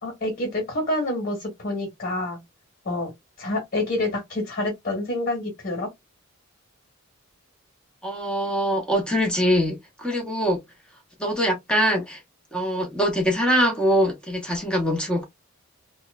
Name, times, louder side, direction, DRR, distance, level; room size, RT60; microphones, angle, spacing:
voice 1, 0.0-2.4 2.8-3.1 3.4-5.9, left 1 dB, 40° left, 1.3 m, -27 dB
voice 2, 8.0-10.6 11.2-12.2 12.5-15.2, equal, 5° left, 0.7 m, -23 dB
2.8 x 2.1 x 2.2 m
head